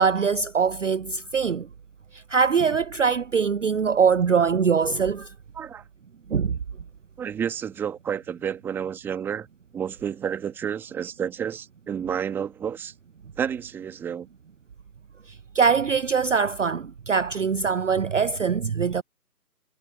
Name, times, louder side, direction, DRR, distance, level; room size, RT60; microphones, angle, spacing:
voice 1, 0.0-1.7 2.1-5.3 6.3-6.6 15.5-19.0, right 6 dB, 55° right, 0.5 m, -22 dB
voice 2, 7.2-9.5 9.7-12.9 13.4-14.3, right 8 dB, 5° right, 2.0 m, -30 dB
figure-of-eight pair, 150°, 47 cm